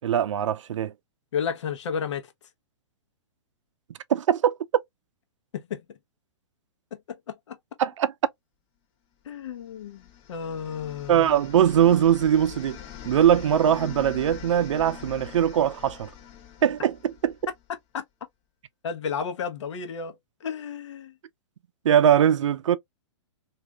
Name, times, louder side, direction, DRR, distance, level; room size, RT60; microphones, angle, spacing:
voice 1, 0.0-0.9 4.1-4.6 7.8-8.1 11.1-12.8 13.0-16.1 16.6-17.4 21.8-22.8, right 9 dB, 80° right, 0.5 m, -21 dB
voice 2, 1.3-2.3 5.5-5.8 7.1-7.6 9.2-11.3 17.9-18.0 18.8-20.2 20.4-21.1, left 7 dB, 70° left, 1.0 m, -32 dB
sound 1, 9.7-17.6, left 9 dB, 35° left, 1.1 m, -43 dB
3.3 x 2.6 x 2.3 m
hypercardioid pair, 140°, 16 cm